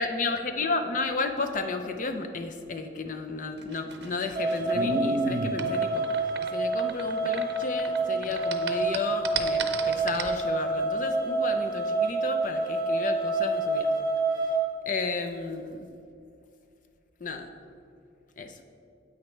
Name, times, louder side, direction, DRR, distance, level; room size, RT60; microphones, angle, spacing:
voice 1, 0.0-6.1 6.5-13.9 14.9-15.9 17.2-17.5 18.4-18.6, left 3 dB, 45° left, 7 dB, 0.5 m, -32 dB
sound 1, 3.6-8.0 8.2-10.4, right 3 dB, 65° right, 0.6 m, -32 dB
sound 2, 4.3-14.6, right 2 dB, 25° right, 1.0 m, -28 dB
9.3 x 8.7 x 3.2 m, 2.5 s
head